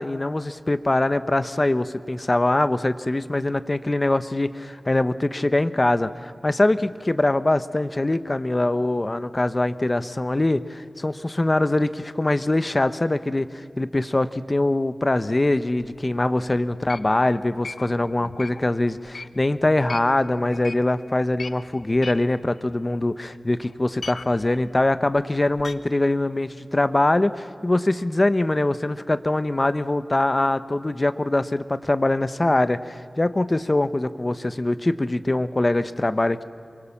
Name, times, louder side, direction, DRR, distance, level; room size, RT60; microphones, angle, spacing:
voice 1, 0.0-36.4, left 2 dB, 30° left, 13 dB, 0.9 m, -23 dB
sound 1, 15.8-16.2 16.7-20.2 20.5-20.9 21.2-23.4 23.6-25.7, left 4 dB, 75° left, 1.0 m, -39 dB
27.0 x 23.5 x 7.2 m, 2.5 s
wide cardioid pair, 85°, 0 cm